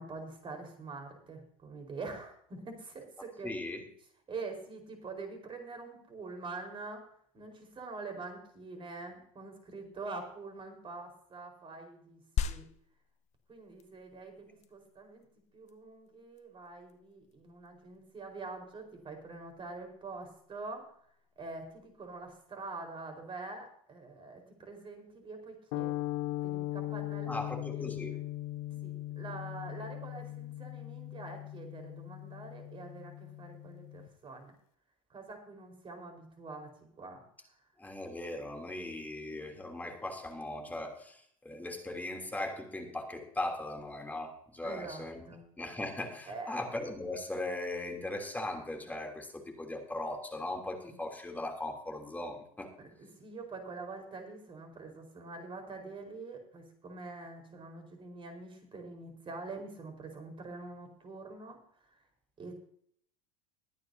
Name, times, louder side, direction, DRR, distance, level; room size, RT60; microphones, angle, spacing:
voice 1, 0.0-3.5 4.3-7.1 7.3-12.6 13.5-15.2 15.5-20.9 21.4-26.0 26.4-27.4 27.8-28.0 28.8-34.5 35.1-36.7 37.0-37.2 44.6-45.5 46.3-46.6 52.8-61.6 61.9-62.0 62.4-62.5, right 3 dB, 30° right, 4 dB, 4.6 m, -45 dB
voice 2, 3.4-3.9 27.3-28.1 37.8-45.2 45.6-52.7, left 2 dB, 10° left, 2 dB, 3.0 m, -39 dB
sound 1, 12.4-22.3, left 8 dB, 40° left, 1.0 m, -43 dB
sound 2, 25.7-34.1, left 16 dB, 55° left, 0.6 m, -39 dB
22.0 x 9.3 x 2.8 m, 0.63 s
hypercardioid pair, 85°, 18 cm